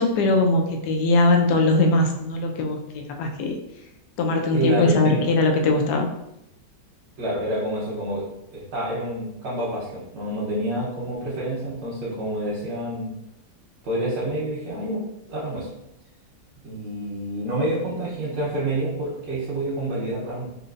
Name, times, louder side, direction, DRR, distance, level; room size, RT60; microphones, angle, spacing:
voice 1, 0.0-3.6 4.2-6.1, left 2 dB, 75° left, 3 dB, 1.1 m, -21 dB
voice 2, 4.5-5.2 7.2-8.2 8.5-13.1 13.8-15.0 15.3-15.7 16.6-20.5, right 1 dB, 90° right, -8 dB, 1.7 m, -28 dB
4.2 x 2.6 x 2.5 m, 0.84 s
omnidirectional pair, 1.9 m